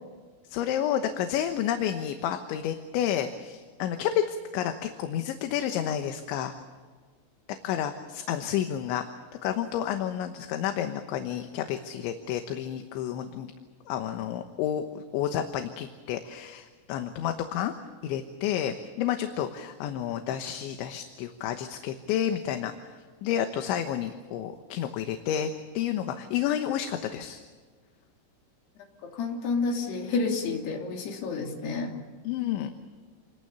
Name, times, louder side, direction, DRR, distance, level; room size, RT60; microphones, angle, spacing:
voice 1, 0.5-6.5 7.6-9.1 9.4-13.5 13.9-14.8 15.1-17.7 18.0-27.4 32.2-32.7, left 10 dB, 75° left, 7 dB, 3.3 m, -30 dB
voice 2, 29.1-31.9, left 4 dB, 60° left, 1 dB, 4.8 m, -29 dB
28.0 x 21.5 x 7.0 m, 1.5 s
omnidirectional pair, 5.8 m